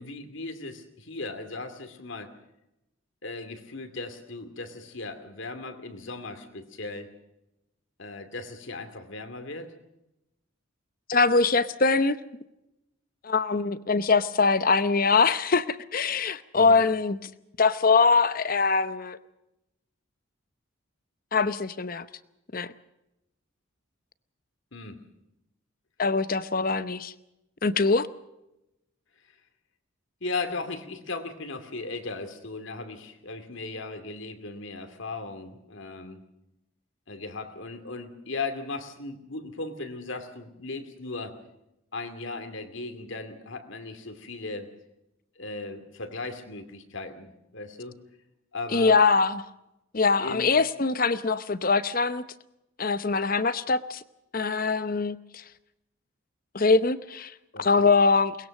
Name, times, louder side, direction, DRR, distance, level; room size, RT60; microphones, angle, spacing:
voice 1, 0.0-2.3 3.2-7.1 8.0-9.7 16.5-16.8 24.7-25.0 30.2-36.2 37.1-41.4 41.9-44.7 45.4-48.0 48.5-49.0 50.2-50.5 57.5-57.9, left 3 dB, 65° left, 8 dB, 2.5 m, -37 dB
voice 2, 11.1-12.2 13.2-17.3 17.6-19.2 21.3-22.1 22.5-22.7 26.0-27.1 27.6-28.1 48.7-49.4 49.9-52.2 52.8-54.0 54.3-55.4 56.5-57.3 57.6-58.4, left 4 dB, 40° left, 14 dB, 0.8 m, -23 dB
22.5 x 20.5 x 6.5 m, 0.90 s
head